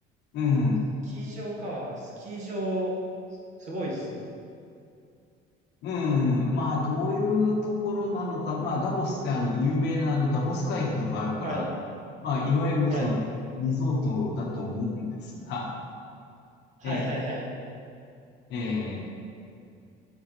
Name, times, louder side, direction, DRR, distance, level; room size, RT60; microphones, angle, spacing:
voice 1, 0.3-0.8 5.8-11.7 12.2-13.2 13.6-15.8 16.8-17.1 18.5-19.1, left 3 dB, 65° left, -1 dB, 1.5 m, -27 dB
voice 2, 1.1-2.9 3.6-4.3 11.4-11.7 12.9-13.1 16.8-17.5, right 1 dB, 40° right, -4 dB, 1.6 m, -33 dB
11.0 x 6.4 x 3.3 m, 2.4 s
cardioid pair, 170°, 19 cm